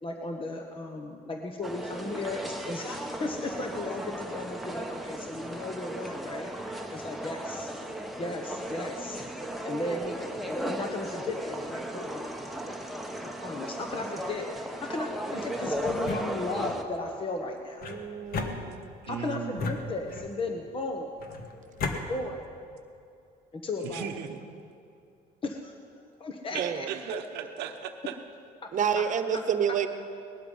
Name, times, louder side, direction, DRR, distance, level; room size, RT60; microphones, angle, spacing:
voice 1, 0.0-7.7 8.2-9.2 9.6-12.7 13.4-17.9 19.1-21.1 22.1-22.5 23.5-24.1 25.4-25.7 26.2-26.9 28.9-29.0 29.3-29.4, left 2 dB, 30° left, 3 dB, 1.2 m, -35 dB
sound 1, 1.6-16.8, right 1 dB, ahead, 1.1 m, -36 dB
sound 2, 15.8-16.8 17.8-19.1 19.6-20.5 21.2-22.0, left 4 dB, 60° left, 1.7 m, -35 dB
voice 2, 17.8-19.1 26.6-26.9 28.7-29.9, right 8 dB, 50° right, 9 dB, 1.1 m, -29 dB
voice 3, 19.0-19.9 23.8-24.6 26.5-28.2, right 9 dB, 90° right, 5 dB, 0.9 m, -37 dB
19.0 x 12.0 x 5.5 m, 2.5 s
cardioid pair, 110°, 17 cm